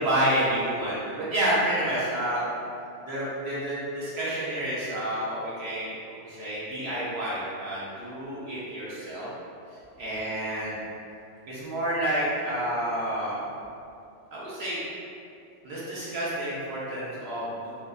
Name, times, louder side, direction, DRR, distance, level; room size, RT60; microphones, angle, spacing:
voice 1, 0.0-2.4 3.1-5.9 6.2-9.3 10.0-10.8 11.5-13.4 14.3-14.8 15.6-17.8, right 1 dB, 65° right, -8 dB, 0.8 m, -29 dB
2.6 x 2.2 x 2.2 m, 2.5 s
omnidirectional pair, 1.2 m